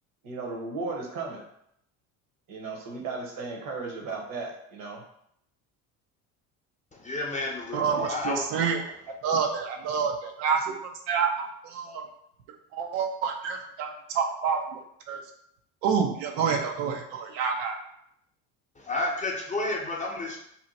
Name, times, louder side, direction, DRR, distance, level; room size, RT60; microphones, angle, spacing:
voice 1, 0.2-1.4 2.5-5.0, right 3 dB, 60° right, 0 dB, 1.0 m, -35 dB
voice 2, 7.0-8.4 18.8-20.4, left 2 dB, 20° left, -1 dB, 0.8 m, -31 dB
voice 3, 7.7-8.8 9.2-12.1 12.7-14.8 15.1-15.2 15.8-17.7, right 6 dB, 75° right, 3 dB, 0.6 m, -28 dB
2.8 x 2.1 x 4.0 m, 0.73 s
supercardioid pair, 85°, 38 cm